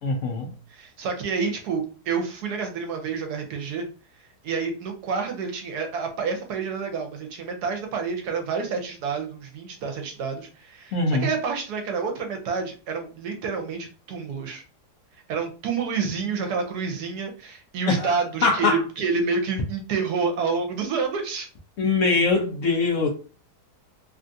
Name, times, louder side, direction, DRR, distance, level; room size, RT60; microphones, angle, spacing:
voice 1, 0.0-0.5 10.9-11.3 17.9-18.2 18.4-18.8 21.8-23.1, left 3 dB, 65° left, 0.9 m, -22 dB
voice 2, 0.7-3.9 4.4-14.6 15.3-21.5, right 5 dB, 75° right, 1.2 m, -28 dB
3.3 x 2.4 x 2.6 m
omnidirectional pair, 1.7 m